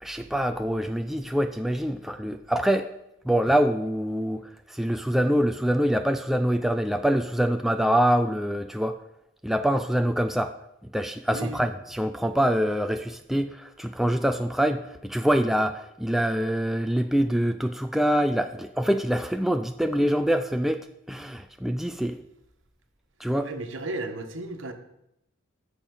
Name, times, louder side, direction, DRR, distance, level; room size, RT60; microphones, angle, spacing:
voice 1, 0.0-2.9 3.3-4.4 4.7-9.0 9.4-10.5 10.9-20.8 21.1-22.2 23.2-23.5, equal, ahead, 7 dB, 0.3 m, -25 dB
voice 2, 11.3-11.7 23.4-24.7, right 2 dB, 65° right, 6 dB, 1.3 m, -34 dB
14.0 x 7.1 x 5.3 m, 0.83 s
head